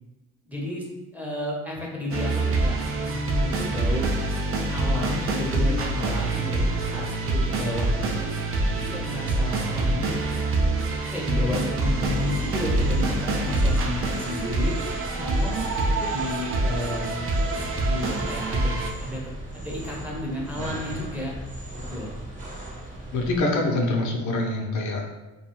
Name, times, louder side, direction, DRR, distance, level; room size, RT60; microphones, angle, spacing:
voice 1, 0.5-0.8 1.1-4.1 4.7-8.2 8.7-10.1 10.9-14.7 15.2-17.3 17.8-18.7 19.0-19.2 19.5-21.3 21.9-22.2, left 1 dB, 5° right, -3 dB, 0.6 m, -32 dB
sound 1, 2.1-18.9, right 2 dB, 45° right, 0.4 m, -25 dB
sound 2, 11.9-23.4, right 1 dB, 25° right, 0.9 m, -37 dB
voice 2, 23.1-25.1, left 2 dB, 75° left, 1 dB, 0.6 m, -25 dB
2.4 x 2.3 x 2.9 m, 1.1 s
cardioid pair, 90°, 30 cm